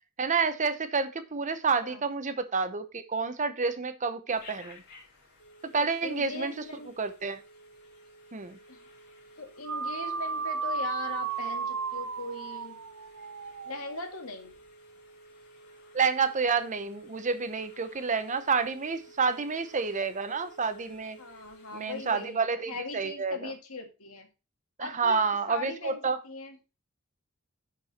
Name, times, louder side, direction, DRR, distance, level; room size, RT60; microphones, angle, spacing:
voice 1, 0.2-4.8 5.7-6.5 7.0-7.4 8.3-8.6 15.9-21.2 21.7-23.5 24.8-26.2, right 5 dB, 35° right, 0.8 m, -29 dB
Telephone, 4.3-22.4, right 1 dB, 50° left, 3.7 m, -54 dB
voice 2, 5.8-6.9 8.7-8.8 9.4-12.8 13.6-14.5 19.2-19.5 21.2-24.3 24.8-25.2 25.5-26.6, left 3 dB, 80° left, 1.9 m, -40 dB
sound 1, 9.6-14.2, right 5 dB, 70° right, 0.6 m, -34 dB
10.5 x 4.7 x 4.2 m
head